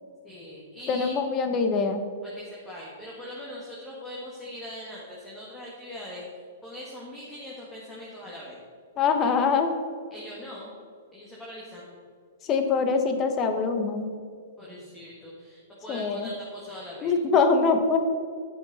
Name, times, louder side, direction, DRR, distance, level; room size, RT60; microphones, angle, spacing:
voice 1, 0.2-1.2 2.2-6.3 6.6-8.6 10.1-10.7 11.1-11.9 14.6-17.1, left 1 dB, 10° left, -5 dB, 1.8 m, -41 dB
voice 2, 0.9-2.0 9.0-9.7 12.4-14.1 15.9-16.3 17.0-18.0, left 5 dB, 25° left, 7 dB, 1.1 m, -23 dB
9.6 x 7.6 x 4.2 m, 2.1 s
hypercardioid pair, 135°, 0 cm